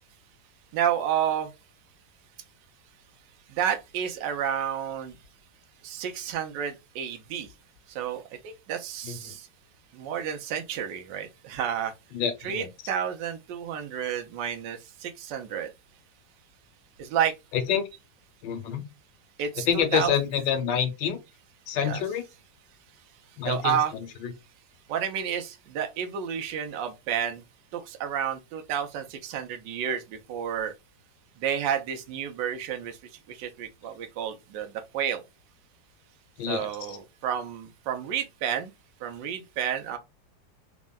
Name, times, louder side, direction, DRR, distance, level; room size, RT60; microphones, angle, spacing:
voice 1, 0.7-1.5 3.5-5.2 5.8-7.5 7.9-9.5 9.9-11.9 12.4-15.7 17.0-17.3 19.4-20.1 21.8-22.0 23.4-23.9 24.9-27.4 27.7-30.7 31.4-33.0 33.3-35.2 36.4-38.7 39.0-40.0, right 9 dB, 80° right, 1.3 m, -30 dB
voice 2, 12.1-12.7 17.5-17.8 18.4-18.8 19.7-21.2 21.7-22.2 23.4-23.8 24.2-24.3 36.4-37.0, left 8 dB, 75° left, 1.2 m, -27 dB
3.5 x 2.1 x 2.2 m
omnidirectional pair, 2.0 m